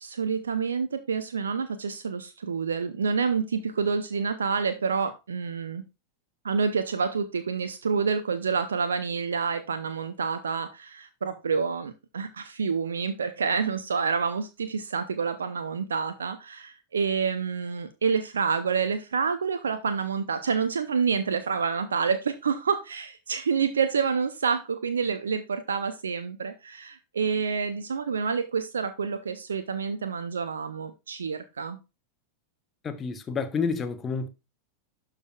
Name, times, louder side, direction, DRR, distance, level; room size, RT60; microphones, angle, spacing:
voice 1, 0.0-5.8 6.4-31.8, right 5 dB, 70° right, 0.6 m, -28 dB
voice 2, 32.8-34.3, left 5 dB, 20° left, 1.0 m, -29 dB
11.5 x 4.9 x 2.3 m
figure-of-eight pair, 90°, 0 cm